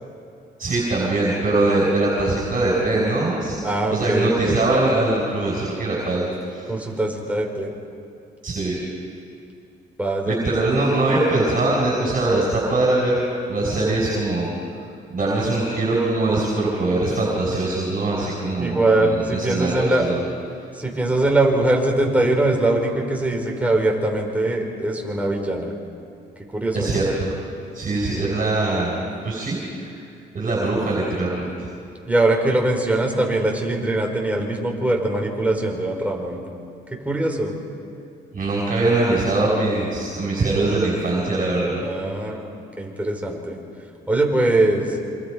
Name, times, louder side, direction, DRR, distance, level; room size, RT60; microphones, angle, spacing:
voice 1, 0.6-3.6 3.9-6.7 8.4-8.8 10.3-14.5 15.1-20.2 26.7-27.4 27.7-29.9 30.3-31.7 38.3-41.8, right 2 dB, 40° right, -4 dB, 5.6 m, -22 dB
voice 2, 3.6-4.6 6.7-7.7 10.0-10.5 18.6-20.1 20.7-25.7 26.4-27.0 32.1-36.4 37.0-37.5 41.8-42.5 42.8-43.6 44.1-44.9, right 2 dB, 5° right, 0 dB, 4.8 m, -22 dB
27.5 x 25.5 x 5.2 m, 2.5 s
cardioid pair, 90°, 20 cm